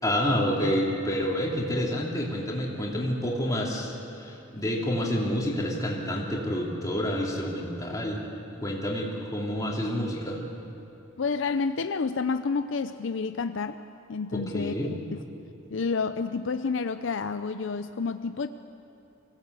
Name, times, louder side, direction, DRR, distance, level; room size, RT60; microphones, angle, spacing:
voice 1, 0.0-8.2 8.6-10.4 14.3-14.9, equal, 15° left, -3 dB, 3.3 m, -28 dB
voice 2, 11.2-13.8 14.1-15.2 15.7-18.5, left 4 dB, 65° left, 10 dB, 0.5 m, -29 dB
25.0 x 17.0 x 8.2 m, 2.9 s
head